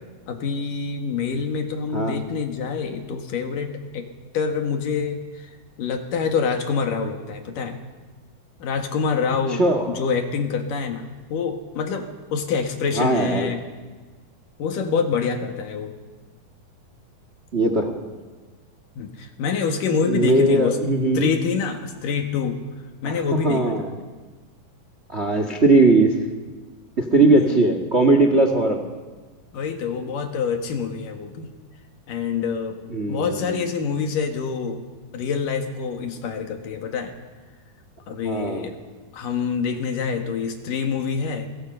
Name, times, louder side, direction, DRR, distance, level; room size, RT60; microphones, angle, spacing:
voice 1, 0.3-4.1 4.3-5.5 5.8-7.8 8.6-13.6 14.6-15.9 19.0-20.8 21.1-22.6 23.0-23.8 27.3-27.6 29.5-31.5 32.1-32.8 33.1-34.8 35.1-37.1 38.1-38.7 39.1-41.5, left 6 dB, 65° left, 4 dB, 3.3 m, -26 dB
voice 2, 9.5-9.9 12.9-13.5 17.5-18.0 20.1-21.3 23.0-24.0 25.1-26.2 27.0-28.8 32.9-33.6 38.2-38.7, right 2 dB, 35° right, 5 dB, 1.0 m, -19 dB
29.5 x 22.5 x 5.6 m, 1.3 s
omnidirectional pair, 4.2 m